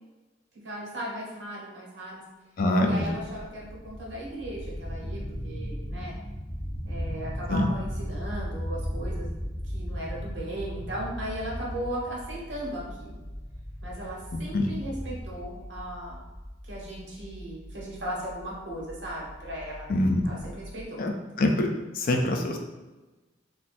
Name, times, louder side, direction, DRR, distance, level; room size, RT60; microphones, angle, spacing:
voice 1, 0.6-2.2 2.8-6.1 6.8-13.2 13.8-16.3 16.6-19.9 20.2-21.0, right 1 dB, 80° right, -4 dB, 1.0 m, -37 dB
voice 2, 2.6-3.1 7.5-7.7 14.3-14.7 19.9-20.2 21.0-21.1 21.4-21.7 22.0-22.6, left 1 dB, 50° left, 3 dB, 0.4 m, -24 dB
sound 1, 3.1-20.8, equal, 20° right, 1.0 m, -37 dB
2.6 x 2.2 x 4.0 m, 1.1 s
head